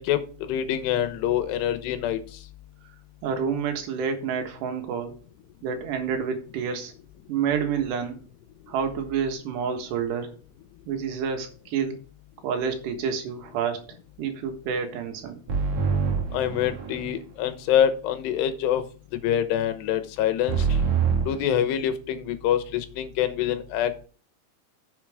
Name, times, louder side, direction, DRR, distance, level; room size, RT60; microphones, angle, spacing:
voice 1, 0.0-2.2 16.3-18.8 19.2-20.8 21.3-24.1, left 10 dB, 80° left, 9 dB, 3.1 m, -25 dB
voice 2, 3.2-5.2 5.6-7.0 7.3-8.2 8.7-10.4 10.9-12.0 12.4-13.8 14.2-15.4, right 7 dB, 80° right, 6 dB, 3.6 m, -28 dB
sound 1, 15.5-17.2 20.5-21.4, right 6 dB, 50° right, 2.7 m, -25 dB
10.0 x 7.4 x 3.5 m, 0.38 s
omnidirectional pair, 4.8 m